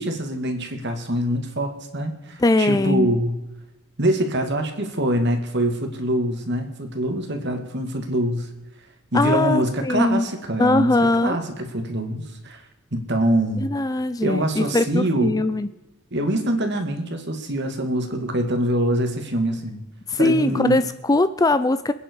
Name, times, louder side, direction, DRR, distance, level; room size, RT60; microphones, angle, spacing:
voice 1, 0.0-3.3 4.0-8.5 9.1-11.0 11.2-12.6 12.9-13.7 14.2-15.4 16.1-19.8 20.2-20.8, right 1 dB, 50° right, 5 dB, 2.3 m, -24 dB
voice 2, 2.4-3.2 9.1-10.3 10.6-11.4 13.6-15.7 20.1-21.9, left 2 dB, 15° left, 12 dB, 0.4 m, -20 dB
27.0 x 9.7 x 4.7 m, 1.0 s
head